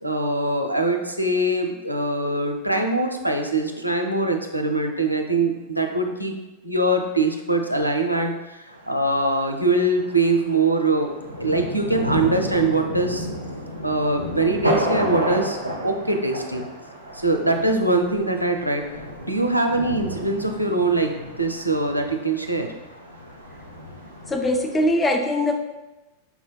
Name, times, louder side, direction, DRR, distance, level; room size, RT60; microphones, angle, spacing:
voice 1, 0.0-6.3 6.6-11.1 11.4-13.3 13.8-15.6 15.8-16.6 17.1-18.9 19.3-22.7, right 2 dB, 90° right, 3 dB, 0.5 m, -23 dB
Thunder, 8.7-24.9, equal, 90° left, 0.7 m, -32 dB
voice 2, 24.3-25.6, left 1 dB, 15° left, 3 dB, 0.4 m, -21 dB
5.7 x 2.2 x 4.1 m, 1.1 s
figure-of-eight pair, 90°, 0 cm